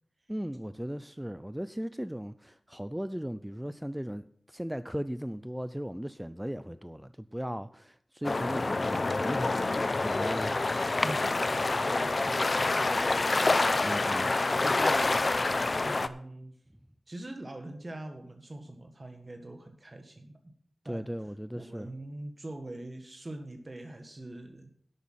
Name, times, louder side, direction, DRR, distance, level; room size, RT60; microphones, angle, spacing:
voice 1, 0.3-9.8 10.0-10.6 13.8-14.8 20.8-21.9, equal, 5° right, 0.4 m, -37 dB
sound 1, 8.2-16.1, left 3 dB, 45° left, 0.7 m, -27 dB
voice 2, 11.0-11.6 11.8-13.6 14.6-15.3 15.8-16.6 17.1-20.5 20.8-21.1 21.5-24.7, right 1 dB, 35° right, 1.4 m, -43 dB
11.0 x 8.2 x 5.7 m
wide cardioid pair, 60°, 0 cm